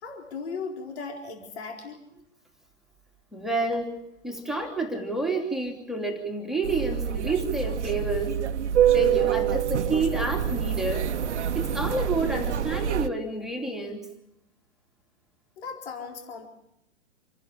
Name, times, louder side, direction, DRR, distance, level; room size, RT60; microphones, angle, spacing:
voice 1, 0.0-2.1 15.6-16.5, left 5 dB, 60° left, 2 dB, 4.2 m, -37 dB
voice 2, 3.3-8.4 8.9-11.1 11.5-14.1, right 2 dB, ahead, 2 dB, 2.9 m, -29 dB
sound 1, 6.6-13.1, right 9 dB, 65° right, 1.1 m, -26 dB
28.0 x 11.5 x 8.8 m, 0.85 s
figure-of-eight pair, 115°, 37 cm